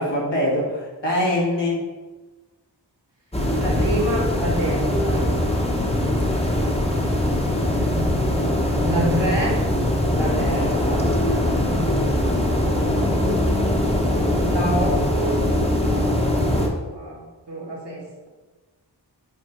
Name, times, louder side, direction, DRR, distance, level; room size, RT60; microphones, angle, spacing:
voice 1, 0.0-1.8 8.3-8.5 10.5-10.7, left 1 dB, 75° left, -6 dB, 1.9 m, -24 dB
sound 1, 3.3-16.7, left 1 dB, 15° left, 1.0 m, -21 dB
voice 2, 3.6-5.3 8.8-9.6 10.1-11.1 14.5-15.5 16.2-17.2 17.5-18.3, right 1 dB, 75° right, -4 dB, 1.7 m, -28 dB
7.9 x 2.7 x 4.5 m, 1.2 s
wide cardioid pair, 40°, 43 cm